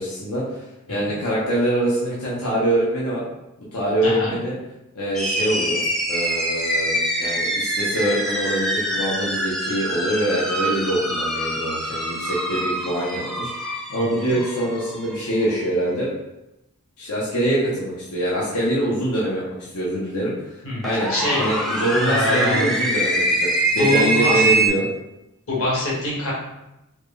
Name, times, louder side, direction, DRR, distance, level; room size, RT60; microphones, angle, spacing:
voice 1, 0.1-0.6 0.9-3.2 3.7-4.5 4.9-5.8 6.1-6.9 7.2-13.5 13.9-16.1 17.0-20.3 20.8-21.1 21.4-23.5 23.7-24.8, right 1 dB, 85° left, -7 dB, 1.0 m, -24 dB
voice 2, 4.0-4.4 14.0-14.3 20.6-20.8 21.1-21.5 22.0-22.7 23.7-24.4 25.5-26.3, left 1 dB, 65° left, -5 dB, 1.3 m, -24 dB
sound 1, 5.2-15.5 20.8-24.7, right 1 dB, ahead, 0.4 m, -24 dB
4.4 x 2.5 x 3.2 m, 0.91 s
head